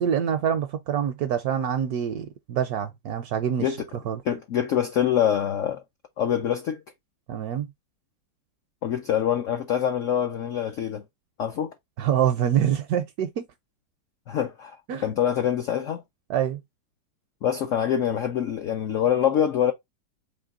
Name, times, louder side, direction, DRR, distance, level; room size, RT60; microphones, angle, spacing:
voice 1, 0.0-3.7 4.1-4.2 7.3-7.7 12.0-13.4 14.9-15.1 16.3-16.6, right 9 dB, 70° right, 0.9 m, -25 dB
voice 2, 4.2-5.8 6.2-6.8 8.8-11.0 11.4-11.7 14.3-14.8 15.0-16.0 17.4-19.7, left 9 dB, 75° left, 0.7 m, -25 dB
4.3 x 2.9 x 3.6 m
omnidirectional pair, 2.0 m